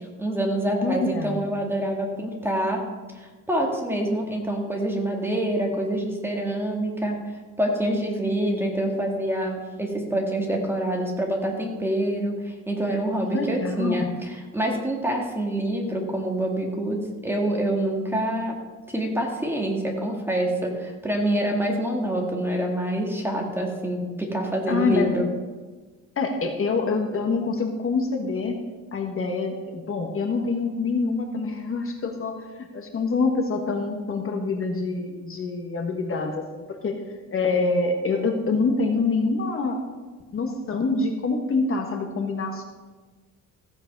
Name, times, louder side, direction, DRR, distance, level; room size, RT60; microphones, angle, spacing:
voice 1, 0.2-2.9 3.1-7.2 7.6-18.6 18.9-25.2, right 1 dB, 5° right, 0 dB, 1.9 m, -26 dB
voice 2, 0.7-1.4 13.3-14.1 24.7-25.1 26.2-28.6 28.9-37.0 37.3-39.8 40.3-42.6, left 3 dB, 40° left, 4 dB, 1.4 m, -26 dB
15.0 x 8.0 x 5.3 m, 1.3 s
cardioid pair, 150°, 33 cm